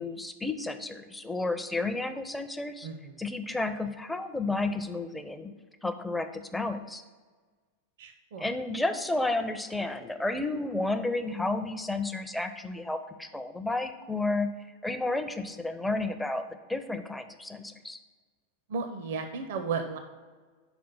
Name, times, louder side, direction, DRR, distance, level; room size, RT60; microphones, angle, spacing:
voice 1, 0.0-2.9 3.2-5.5 5.8-7.0 8.4-18.0, left 2 dB, 5° left, 8 dB, 0.5 m, -32 dB
voice 2, 2.8-3.2 8.0-8.5 18.7-20.0, right 5 dB, 55° right, 7 dB, 0.6 m, -34 dB
6.0 x 4.7 x 5.4 m, 1.4 s
figure-of-eight pair, 90°, 0 cm